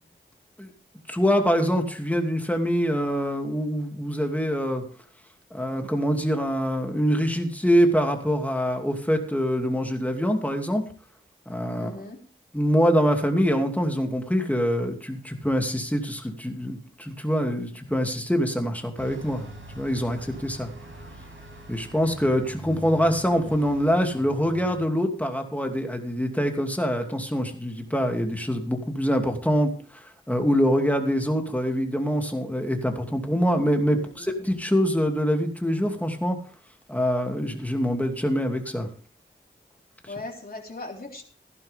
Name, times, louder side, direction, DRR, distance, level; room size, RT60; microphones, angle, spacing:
voice 1, 1.1-4.8 5.5-10.8 11.5-11.9 12.5-19.5 19.7-20.7 21.7-36.4 36.9-38.9, equal, 5° left, 3 dB, 2.7 m, -24 dB
voice 2, 11.8-12.2 33.9-34.3 40.1-41.2, left 2 dB, 45° left, 0 dB, 3.7 m, -39 dB
Bus, 19.0-24.9, right 1 dB, 75° right, 5.9 m, -43 dB
15.5 x 11.5 x 3.6 m, 0.42 s
wide cardioid pair, 60°, 21 cm